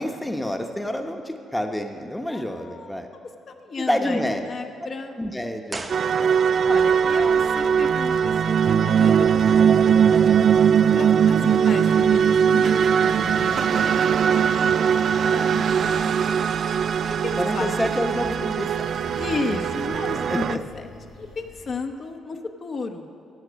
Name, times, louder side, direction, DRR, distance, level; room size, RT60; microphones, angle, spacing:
voice 1, 0.0-3.1 3.8-4.4 5.1-5.8 11.4-11.7 17.4-18.9 20.3-20.6, left 1 dB, 5° left, 4 dB, 0.8 m, -28 dB
voice 2, 2.3-5.2 6.2-10.5 10.9-16.5 17.0-17.8 19.2-20.9 21.2-23.1, left 3 dB, 50° left, 5 dB, 0.8 m, -34 dB
sound 1, 5.7-6.8 7.0-7.1, right 3 dB, 30° right, 0.7 m, -37 dB
sound 2, 5.9-20.6, right 7 dB, 60° right, 0.3 m, -20 dB
sound 3, 6.5-21.8, left 2 dB, 85° left, 1.9 m, -45 dB
15.0 x 5.9 x 6.2 m, 2.7 s
cardioid pair, 90°, 0 cm